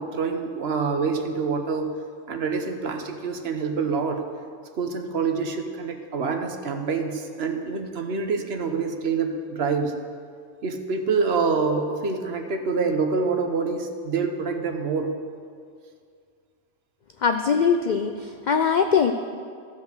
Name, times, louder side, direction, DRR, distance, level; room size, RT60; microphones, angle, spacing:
voice 1, 0.0-1.9 2.3-4.2 4.7-9.9 10.6-15.1, right 4 dB, 60° right, 5 dB, 1.1 m, -26 dB
voice 2, 17.2-19.1, left 6 dB, 65° left, 7 dB, 0.4 m, -21 dB
15.0 x 5.4 x 6.6 m, 2.2 s
omnidirectional pair, 1.3 m